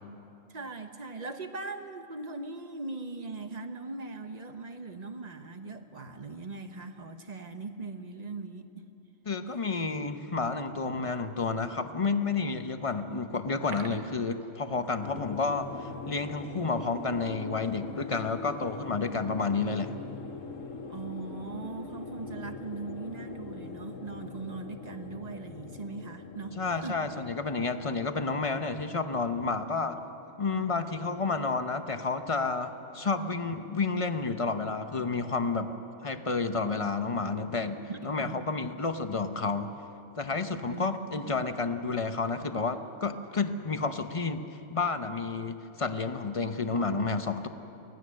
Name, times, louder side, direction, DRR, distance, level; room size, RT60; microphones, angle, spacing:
voice 1, 0.5-8.9 20.9-27.0 37.9-38.5 40.7-41.4, right 3 dB, 35° right, 7 dB, 1.1 m, -40 dB
voice 2, 9.3-20.0 26.6-30.0 30.4-35.7 36.0-39.7 40.2-44.4 44.7-47.5, left 4 dB, 30° left, 8 dB, 0.7 m, -30 dB
sound 1, 13.4-15.2 15.4-15.5 16.0-16.1, right 5 dB, 70° right, 1.4 m, -46 dB
sound 2, 15.0-29.9, left 4 dB, 85° left, 1.5 m, -43 dB
24.0 x 17.5 x 6.4 m, 2.8 s
omnidirectional pair, 1.3 m